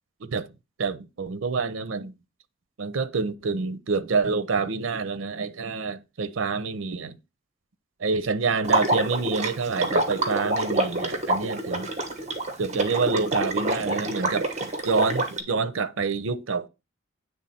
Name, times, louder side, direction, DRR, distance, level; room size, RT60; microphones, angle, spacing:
voice 1, 0.8-2.1 2.8-7.2 8.0-11.9 12.6-16.7, right 4 dB, 80° right, 0.6 m, -27 dB
Water / Liquid, 8.6-15.4, right 2 dB, 35° right, 1.1 m, -26 dB
9.0 x 3.4 x 4.2 m
head